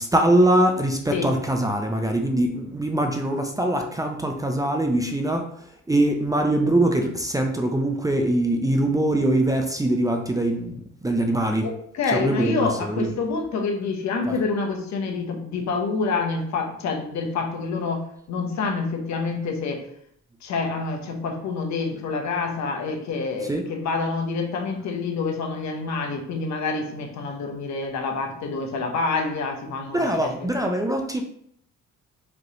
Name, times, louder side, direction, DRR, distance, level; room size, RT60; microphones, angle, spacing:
voice 1, 0.0-5.5 5.9-10.7 11.0-11.7 12.1-13.1 14.3-14.4 23.4-23.6 29.9-31.2, right 1 dB, 10° right, 4 dB, 0.5 m, -22 dB
voice 2, 11.6-19.8 20.4-30.5, left 4 dB, 65° left, 2 dB, 1.0 m, -27 dB
5.2 x 3.0 x 2.9 m, 0.67 s
cardioid pair, 90°, 30 cm